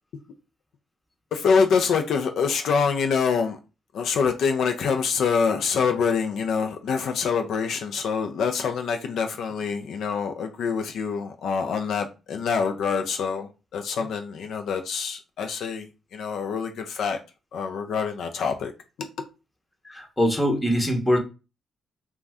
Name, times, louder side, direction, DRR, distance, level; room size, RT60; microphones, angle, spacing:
voice 1, 1.3-3.6 3.9-17.2 17.5-18.7 19.0-19.1, left 5 dB, 70° left, 0.4 m, -25 dB
voice 2, 19.9-21.2, equal, 10° left, 0.7 m, -22 dB
2.5 x 2.2 x 3.3 m
cardioid pair, 90°, 0 cm